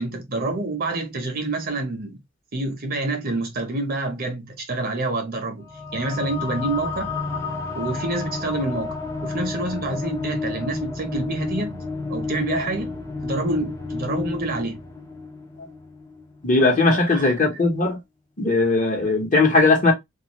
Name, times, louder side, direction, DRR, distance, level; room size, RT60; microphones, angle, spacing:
voice 1, 0.0-2.2 2.5-7.1 7.7-11.8 12.1-13.0 13.2-14.8 16.9-17.6, right 2 dB, 45° right, 0.8 m, -28 dB
sound 1, 5.6-16.5, left 3 dB, 15° left, 0.6 m, -31 dB
voice 2, 16.4-18.0 18.4-19.9, left 3 dB, 40° left, 1.0 m, -19 dB
2.4 x 2.4 x 2.9 m
head